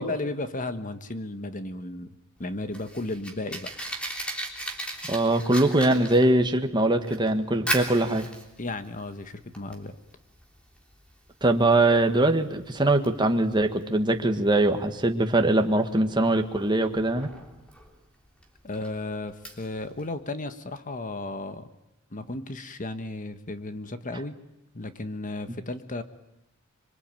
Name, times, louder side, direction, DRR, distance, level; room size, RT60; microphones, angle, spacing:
voice 1, 0.0-3.7 8.6-10.0 18.6-21.7 22.1-24.4 24.7-26.0, left 2 dB, 40° left, 10 dB, 1.4 m, -34 dB
Fire, 2.4-20.1, right 1 dB, 5° left, 3.5 m, -38 dB
voice 2, 5.1-8.2 11.4-17.3, right 2 dB, 20° right, 5 dB, 1.7 m, -22 dB
26.0 x 24.0 x 9.0 m, 0.88 s
head